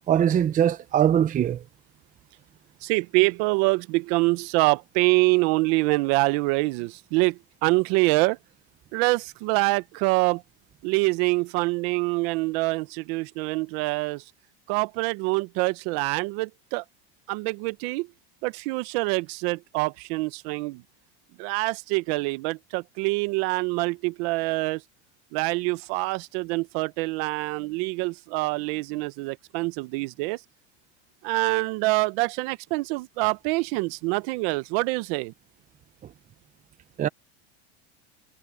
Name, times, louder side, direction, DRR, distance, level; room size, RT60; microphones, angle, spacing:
voice 1, 0.1-1.6 37.0-37.1, right 10 dB, 25° right, 0.7 m, -21 dB
voice 2, 2.8-8.4 8.9-10.4 10.8-14.2 14.7-16.8 17.3-18.1 18.4-20.8 21.4-24.8 25.3-30.4 31.2-35.3, right 24 dB, 65° right, 1.1 m, -25 dB
supercardioid pair, 135°, 33 cm